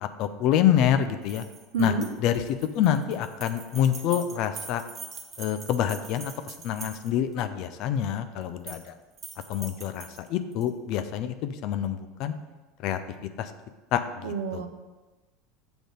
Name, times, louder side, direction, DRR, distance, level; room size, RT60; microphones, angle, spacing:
voice 1, 0.0-1.4 1.8-1.9 2.2-2.4 2.7-4.8 5.4-8.9 9.5-12.3 12.8-13.0 13.4-13.5 13.9-14.6, left 10 dB, 50° left, 10 dB, 0.5 m, -27 dB
sound 1, 1.2-7.3 8.4-8.9 9.2-10.7, right 5 dB, 30° right, 0.9 m, -43 dB
voice 2, 1.7-2.1 14.2-14.7, right 3 dB, 65° right, 6 dB, 0.7 m, -27 dB
7.0 x 3.8 x 6.3 m, 1.2 s
figure-of-eight pair, 75°, 0 cm